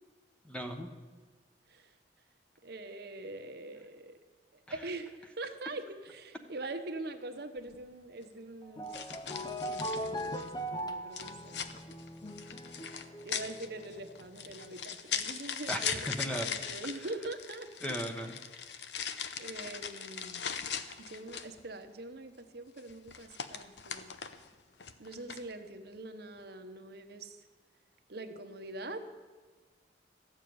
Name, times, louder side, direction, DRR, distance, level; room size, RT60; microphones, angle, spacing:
voice 1, 0.5-0.9 15.7-16.5 17.8-18.4, equal, 5° left, 5 dB, 1.0 m, -36 dB
voice 2, 2.6-4.2 4.7-8.9 9.3-11.6 13.2-18.0 19.4-20.4 21.0-24.1 25.0-27.4 28.1-29.0, right 2 dB, 60° right, 7 dB, 1.0 m, -43 dB
sound 1, 7.6-7.8 8.9-10.6 11.1-21.6 22.8-24.5 24.8-25.5, left 7 dB, 70° left, 0.8 m, -40 dB
sound 2, 8.6-14.5, equal, 25° left, 0.6 m, -40 dB
14.0 x 6.9 x 9.5 m, 1.4 s
head